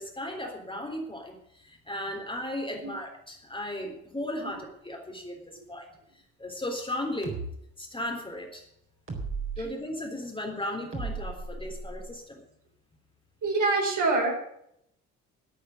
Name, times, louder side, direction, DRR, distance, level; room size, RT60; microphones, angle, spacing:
voice 1, 0.0-5.9 6.4-7.4 7.8-8.6 9.6-12.4, left 1 dB, 15° left, 2 dB, 3.5 m, -36 dB
sound 1, 7.2-7.5 9.1-9.6 10.9-12.1, right 4 dB, 30° right, 4.1 m, -35 dB
voice 2, 13.4-14.3, right 3 dB, 50° right, 1 dB, 4.3 m, -25 dB
11.5 x 8.6 x 9.3 m, 0.74 s
figure-of-eight pair, 45°, 40 cm